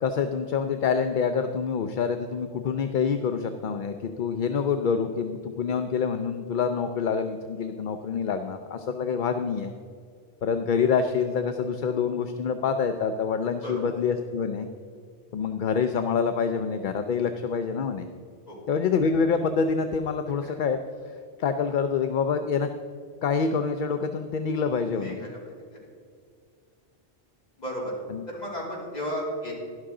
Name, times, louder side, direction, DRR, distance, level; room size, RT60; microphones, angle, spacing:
voice 1, 0.0-9.7 10.4-14.7 15.3-18.1 18.7-20.8 21.0-22.7 23.2-25.2 28.1-28.2, left 6 dB, 55° left, 7 dB, 0.6 m, -26 dB
voice 2, 24.9-25.5 27.6-27.9 28.3-29.5, equal, 40° left, -5 dB, 3.3 m, -34 dB
12.5 x 11.5 x 3.8 m, 2.1 s
omnidirectional pair, 1.1 m